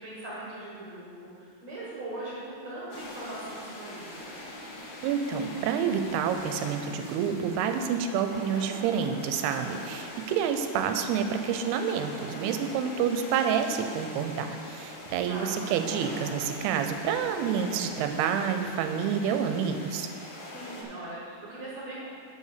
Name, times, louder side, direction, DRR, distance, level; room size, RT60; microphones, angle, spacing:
voice 1, 0.0-4.4 15.3-15.7 20.5-22.1, right 1 dB, 55° right, -7 dB, 2.1 m, -40 dB
sound 1, 2.9-20.8, left 1 dB, 80° left, 3.3 m, -42 dB
voice 2, 5.0-20.1, right 7 dB, 85° right, 7 dB, 2.5 m, -28 dB
7.0 x 5.4 x 6.6 m, 2.3 s
omnidirectional pair, 4.6 m